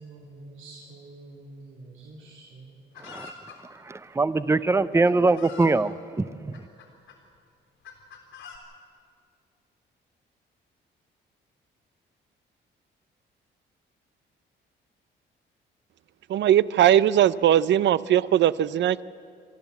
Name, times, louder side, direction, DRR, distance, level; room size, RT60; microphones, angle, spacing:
voice 1, 0.0-3.0, right 2 dB, 85° right, -3 dB, 3.0 m, -47 dB
Chicken rooster, 2.9-3.6 4.5-4.6 5.0-5.8 6.5-7.2 7.8-8.6, left 6 dB, 90° left, 3.5 m, -45 dB
voice 2, 3.9-6.5, right 3 dB, 15° right, 15 dB, 0.6 m, -23 dB
voice 3, 16.3-19.0, right 11 dB, 65° right, 18 dB, 0.6 m, -20 dB
29.0 x 12.0 x 8.2 m, 2.3 s
cardioid pair, 90°, 20 cm